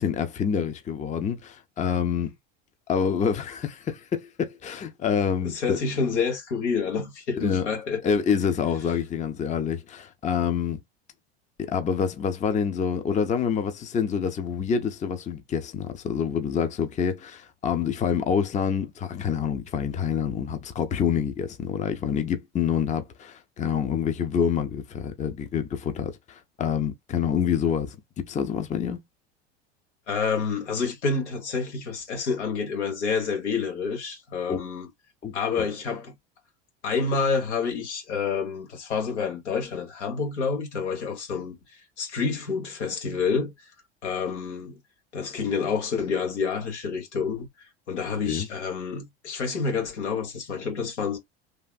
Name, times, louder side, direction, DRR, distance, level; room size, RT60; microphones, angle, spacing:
voice 1, 0.0-2.3 2.9-5.8 7.4-7.7 8.0-10.8 11.6-28.0 28.3-29.0 34.5-34.6 35.2-35.7 48.3-48.5, left 7 dB, 20° left, 0.5 m, -27 dB
voice 2, 5.4-8.0 30.1-34.9 35.3-36.1 36.8-41.5 42.0-43.5 44.0-44.8 45.1-47.5 47.9-51.2, left 5 dB, 90° left, 1.4 m, -28 dB
3.3 x 2.5 x 2.4 m
hypercardioid pair, 90°, 34 cm